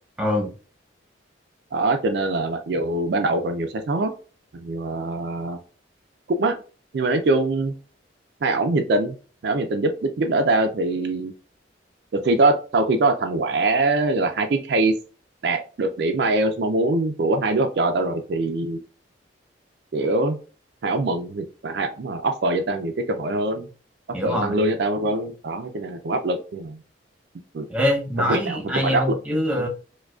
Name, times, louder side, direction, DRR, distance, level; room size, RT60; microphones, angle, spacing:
voice 1, 0.2-0.5 24.1-24.6 27.7-29.7, left 1 dB, 5° right, 0 dB, 0.8 m, -24 dB
voice 2, 1.7-4.1 4.5-5.6 6.3-6.5 6.9-7.7 8.4-9.1 9.4-11.3 12.2-14.9 15.4-18.8 19.9-20.4 20.8-23.7 24.2-26.8 27.5-27.6 28.3-28.6 28.8-29.7, right 2 dB, 60° right, 5 dB, 0.4 m, -23 dB
4.7 x 2.2 x 2.3 m, 0.36 s
head